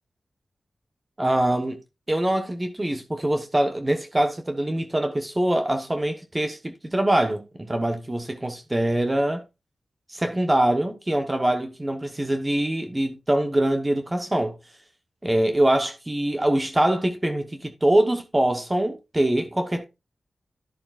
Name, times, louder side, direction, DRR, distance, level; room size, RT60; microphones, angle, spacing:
voice 1, 1.2-1.8 2.1-9.4 10.1-14.6 15.2-19.8, right 1 dB, 25° right, 1.1 m, -24 dB
11.5 x 6.7 x 2.4 m
wide cardioid pair, 70°, 0 cm